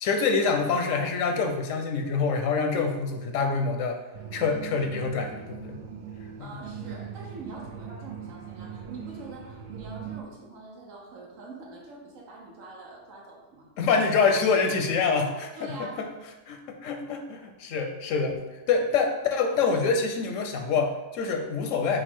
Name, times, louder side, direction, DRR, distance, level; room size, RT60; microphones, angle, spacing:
voice 1, 0.0-4.0 4.3-5.8 6.4-6.5 13.8-16.1 16.5-18.4 18.7-22.0, left 5 dB, 85° left, 4 dB, 1.0 m, -26 dB
sound 1, 4.1-10.2, right 7 dB, 70° right, 0.4 m, -40 dB
voice 2, 6.4-13.7 15.6-16.1, right 2 dB, 90° right, -2 dB, 1.3 m, -44 dB
5.8 x 2.3 x 3.5 m, 1.1 s
omnidirectional pair, 1.3 m